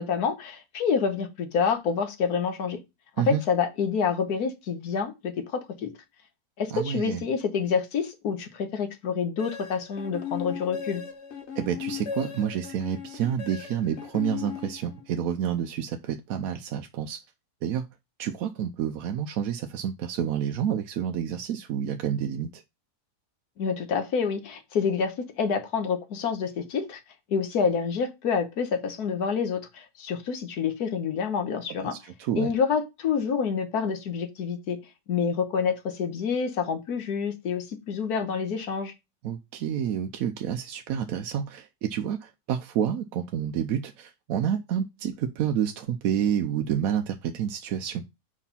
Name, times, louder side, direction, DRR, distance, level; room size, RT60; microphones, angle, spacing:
voice 1, 0.0-2.8 3.3-5.9 6.6-11.0 23.6-27.0 27.3-31.9 32.3-34.8 35.1-38.9, left 6 dB, 85° left, 1.6 m, -27 dB
voice 2, 6.7-7.2 11.5-17.2 17.6-17.9 18.2-22.6 31.9-32.5 39.2-48.0, right 9 dB, 75° right, 1.0 m, -29 dB
sound 1, 9.4-15.2, left 7 dB, 50° left, 1.2 m, -37 dB
4.9 x 4.2 x 5.6 m
omnidirectional pair, 1.6 m